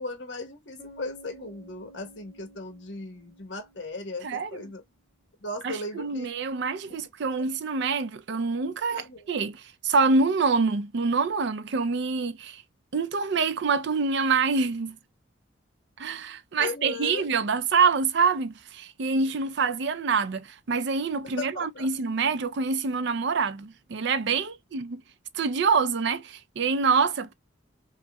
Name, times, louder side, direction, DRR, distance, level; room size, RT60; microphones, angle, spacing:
voice 1, 0.0-4.8 5.4-6.3 6.8-6.9 7.3-7.5 8.9-9.5 16.6-17.3 19.4-19.5 21.4-21.9, left 2 dB, 65° left, 1.1 m, -37 dB
Bass guitar, 0.8-4.6, right 2 dB, 45° left, 1.9 m, -52 dB
voice 2, 5.6-12.6 12.9-15.0 16.0-25.0 25.3-27.3, right 4 dB, 65° right, 0.5 m, -26 dB
5.4 x 2.1 x 2.2 m
head